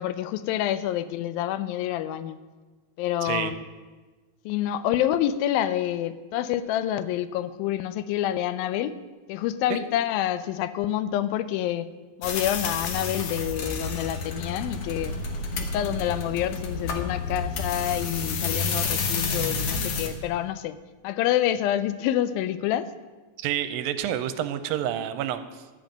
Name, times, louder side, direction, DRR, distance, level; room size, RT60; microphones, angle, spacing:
voice 1, 0.0-2.4 3.0-3.6 4.5-8.9 9.3-11.9 12.2-15.1 15.6-20.8 21.0-22.9, left 12 dB, 90° left, 14 dB, 2.4 m, -27 dB
voice 2, 3.2-3.5 23.4-25.6, right 11 dB, 85° right, 11 dB, 2.3 m, -29 dB
sound 1, 12.2-20.1, left 4 dB, 70° left, 1.4 m, -30 dB
12.0 x 5.3 x 8.9 m, 1.3 s
omnidirectional pair, 4.1 m